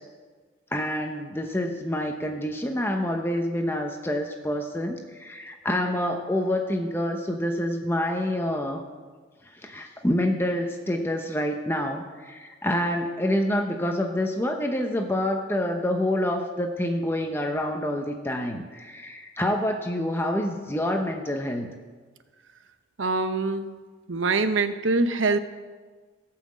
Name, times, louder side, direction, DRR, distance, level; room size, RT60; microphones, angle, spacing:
voice 1, 0.7-8.8 9.6-21.7, left 1 dB, 10° left, 4 dB, 0.7 m, -27 dB
voice 2, 23.0-23.7 24.1-25.4, right 3 dB, 85° right, 10 dB, 0.8 m, -24 dB
17.0 x 5.8 x 7.5 m, 1.4 s
head